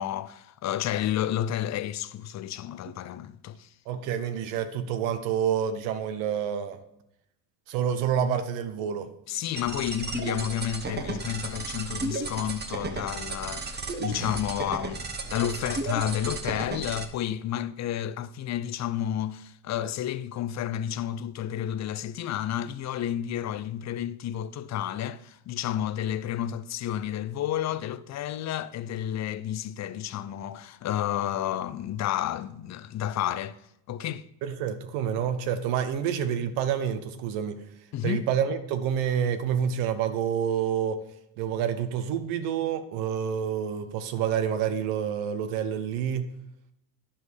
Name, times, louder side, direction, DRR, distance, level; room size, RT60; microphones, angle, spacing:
voice 1, 0.0-3.7 9.3-33.6 33.9-34.3 37.9-38.2, left 11 dB, 40° left, 0.5 m, -31 dB
voice 2, 3.9-6.8 7.7-9.1 34.4-37.6 38.0-41.0 41.4-46.3, right 8 dB, 90° right, 1.0 m, -28 dB
sound 1, 9.6-17.0, right 3 dB, 20° right, 1.1 m, -34 dB
10.0 x 5.3 x 6.3 m
cardioid pair, 110°, 44 cm